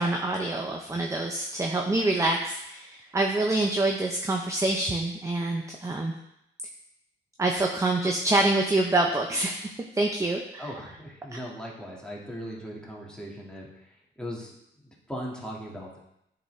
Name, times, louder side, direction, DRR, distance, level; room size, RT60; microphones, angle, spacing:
voice 1, 0.0-6.1 7.4-10.6, right 2 dB, 15° right, 2 dB, 0.6 m, -26 dB
voice 2, 10.6-16.0, equal, 5° left, -4 dB, 1.8 m, -39 dB
10.0 x 4.0 x 3.3 m, 0.81 s
cardioid pair, 95°, 21 cm